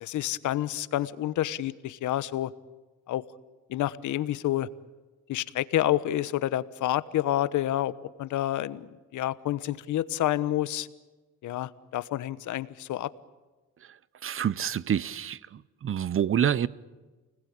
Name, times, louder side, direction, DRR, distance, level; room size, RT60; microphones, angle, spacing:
voice 1, 0.0-2.5 3.1-3.2 3.7-4.7 5.3-7.9 8.2-10.9 11.4-13.1, left 13 dB, 80° left, 1.1 m, -29 dB
voice 2, 14.2-15.4 15.8-16.7, right 9 dB, 45° right, 0.9 m, -26 dB
29.5 x 20.5 x 8.7 m
cardioid pair, 90°, 30 cm